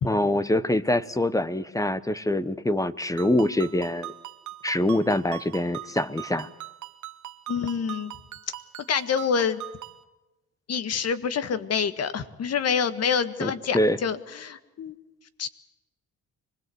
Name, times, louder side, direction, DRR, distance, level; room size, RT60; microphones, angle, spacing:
voice 1, 0.0-4.1 4.6-6.5 13.4-14.0, left 1 dB, 10° left, 14 dB, 1.1 m, -24 dB
Ringtone, 3.2-10.0, right 14 dB, 75° right, 1.4 m, -41 dB
voice 2, 7.5-8.2 8.9-9.6 10.7-15.0 15.4-15.5, left 6 dB, 55° left, 11 dB, 1.8 m, -27 dB
25.5 x 20.5 x 7.9 m, 1.0 s
cardioid pair, 90°, 30 cm